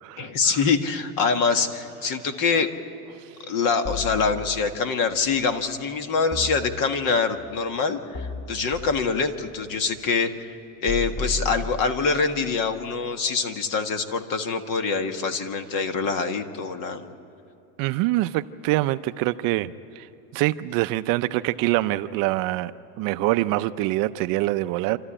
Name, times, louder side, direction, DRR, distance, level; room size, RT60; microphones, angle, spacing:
voice 1, 0.2-2.7 3.5-10.5 10.8-17.1, left 5 dB, 45° left, 7 dB, 1.8 m, -25 dB
sound 1, 3.8-4.9 6.3-7.3 8.1-9.2 10.9-12.3, left 3 dB, 30° left, 2.3 m, -34 dB
voice 2, 17.8-20.1 20.3-22.7 23.0-25.0, right 17 dB, 50° right, 12 dB, 0.6 m, -24 dB
27.0 x 13.5 x 10.0 m, 2.8 s
supercardioid pair, 130°, 44 cm